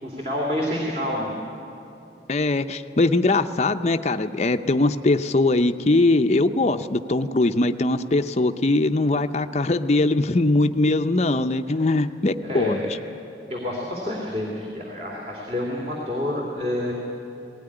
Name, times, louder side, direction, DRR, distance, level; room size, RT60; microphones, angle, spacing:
voice 1, 0.0-1.3 12.4-12.9 13.5-16.9, left 1 dB, 35° right, -2 dB, 2.8 m, -28 dB
voice 2, 2.3-12.8, left 2 dB, 40° left, 8 dB, 0.6 m, -21 dB
18.5 x 18.0 x 9.9 m, 2.8 s
head